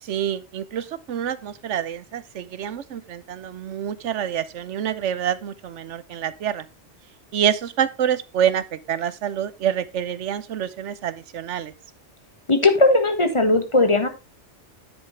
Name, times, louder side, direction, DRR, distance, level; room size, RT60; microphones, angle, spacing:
voice 1, 0.0-6.6 7.3-11.7, right 9 dB, 85° right, 16 dB, 1.1 m, -27 dB
voice 2, 12.5-14.1, left 2 dB, 25° left, 7 dB, 1.6 m, -18 dB
10.0 x 8.2 x 3.2 m, 0.26 s
omnidirectional pair, 1.2 m